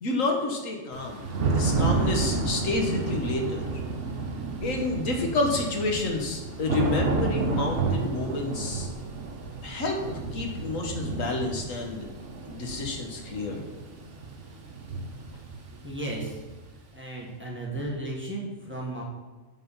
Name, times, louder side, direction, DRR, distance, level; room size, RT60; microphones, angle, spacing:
voice 1, 0.0-3.8 4.6-8.9 9.6-10.0 10.3-12.1 12.5-13.6, left 3 dB, 85° left, 2 dB, 1.7 m, -29 dB
Thunder / Rain, 0.9-16.7, right 3 dB, 65° right, 1.4 m, -31 dB
voice 2, 15.8-16.4 16.9-19.0, right 1 dB, 10° right, -3 dB, 1.7 m, -34 dB
8.0 x 6.5 x 5.6 m, 1.3 s
omnidirectional pair, 1.3 m